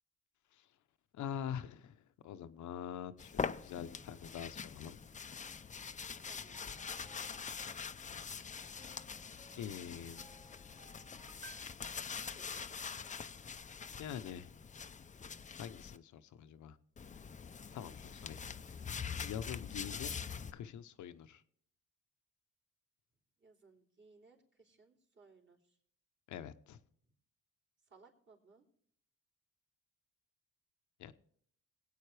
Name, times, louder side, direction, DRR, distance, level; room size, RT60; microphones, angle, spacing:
voice 1, 1.1-5.0 9.5-10.2 14.0-14.5 15.6-16.8 17.7-18.8 19.2-20.3 20.5-21.4 26.3-26.8 31.0-31.1, left 9 dB, 75° left, 11 dB, 0.8 m, -45 dB
sound 1, 3.2-16.0 17.0-20.5, left 6 dB, 25° left, 0.5 m, -44 dB
voice 2, 6.3-6.8 23.4-25.8 27.0-27.1 27.9-28.7, right 4 dB, 40° right, -1 dB, 3.2 m, -64 dB
sound 2, 6.5-11.6, right 3 dB, 20° right, 1.9 m, -61 dB
21.0 x 8.6 x 3.3 m, 0.67 s
cardioid pair, 90°, 30 cm